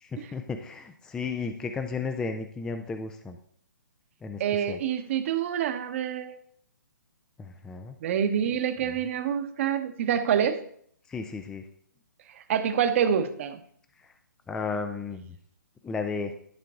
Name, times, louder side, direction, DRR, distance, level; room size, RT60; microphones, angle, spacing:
voice 1, 0.0-3.4 4.2-4.8 7.4-8.0 8.8-8.9 11.1-11.6 14.0-14.1 14.5-15.3 15.8-16.3, left 4 dB, 5° left, 7 dB, 0.4 m, -34 dB
voice 2, 4.4-6.4 8.0-10.6 12.5-13.6, right 8 dB, 40° right, 9 dB, 1.0 m, -26 dB
11.5 x 5.8 x 3.6 m, 0.62 s
figure-of-eight pair, 135°, 11 cm